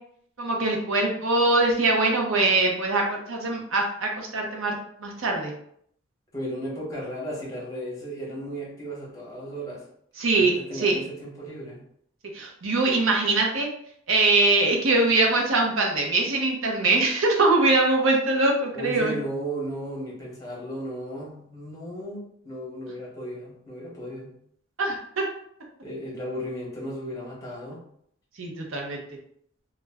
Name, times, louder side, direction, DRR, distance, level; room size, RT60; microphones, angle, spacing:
voice 1, 0.4-5.5 10.2-11.0 12.3-13.7 14.1-19.2 24.8-25.2 28.4-29.0, right 2 dB, 85° right, 0 dB, 0.7 m, -23 dB
voice 2, 6.3-9.8 10.3-11.8 18.7-24.3 25.8-27.8, equal, 15° left, -4 dB, 0.9 m, -35 dB
2.3 x 2.1 x 3.4 m, 0.68 s
head